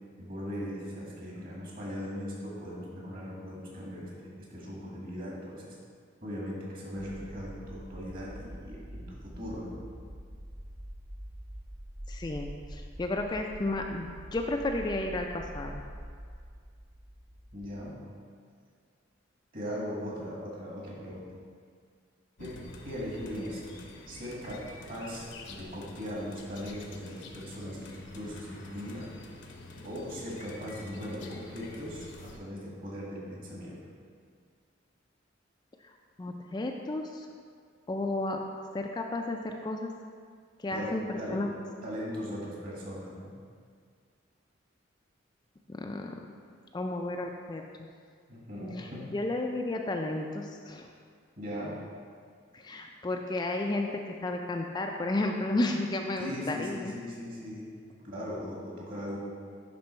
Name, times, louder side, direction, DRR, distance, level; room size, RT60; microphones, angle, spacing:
voice 1, 0.2-5.8 6.2-9.8 17.5-18.0 19.5-21.3 22.4-23.6 24.1-29.1 29.8-33.8 40.7-41.4 41.8-43.4 48.3-49.1 51.4-51.8 56.2-59.2, equal, 45° right, -4 dB, 1.9 m, -39 dB
sound 1, 7.0-17.9, equal, 25° right, 0.6 m, -45 dB
voice 2, 12.1-15.8 35.8-37.3 37.9-38.4 38.7-39.9 40.6-41.5 45.7-46.2 46.7-47.6 48.8-50.9 52.5-57.0, left 2 dB, 20° left, 2 dB, 0.3 m, -33 dB
sound 2, 22.4-32.4, left 2 dB, 65° left, 0.7 m, -47 dB
10.5 x 3.8 x 4.3 m, 2.1 s
head